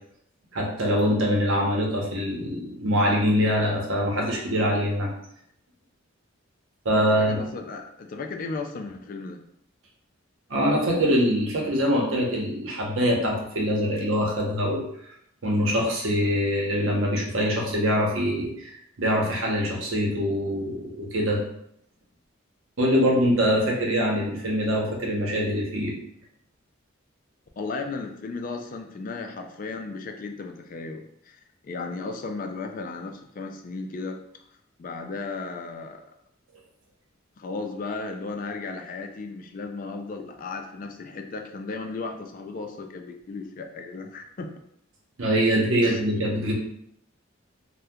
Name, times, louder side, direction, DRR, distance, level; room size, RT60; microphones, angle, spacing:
voice 1, 0.5-5.1 6.8-7.4 10.5-14.8 15.4-21.4 22.8-25.9 45.2-46.5, equal, 75° right, -1 dB, 0.8 m, -24 dB
voice 2, 7.0-9.4 27.6-34.2 34.8-36.0 37.4-44.5 45.8-46.0, left 3 dB, 45° left, 4 dB, 0.3 m, -35 dB
2.7 x 2.2 x 3.5 m, 0.71 s
head